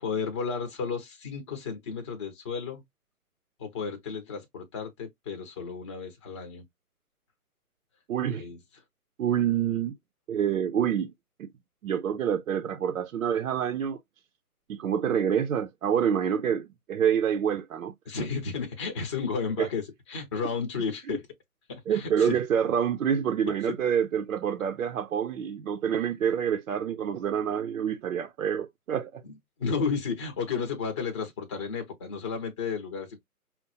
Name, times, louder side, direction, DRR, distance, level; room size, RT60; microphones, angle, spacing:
voice 1, 0.0-2.8 3.6-6.6 8.4-8.6 18.1-19.8 20.1-21.2 21.7-22.3 29.2-29.3 29.6-33.2, left 5 dB, 20° left, 0.7 m, -32 dB
voice 2, 8.1-8.5 9.2-9.9 10.3-11.1 11.4-11.5 11.8-14.0 14.7-17.9 19.6-19.7 21.9-29.2, right 8 dB, 65° right, 0.6 m, -27 dB
5.6 x 2.1 x 2.7 m
hypercardioid pair, 150°, 45 cm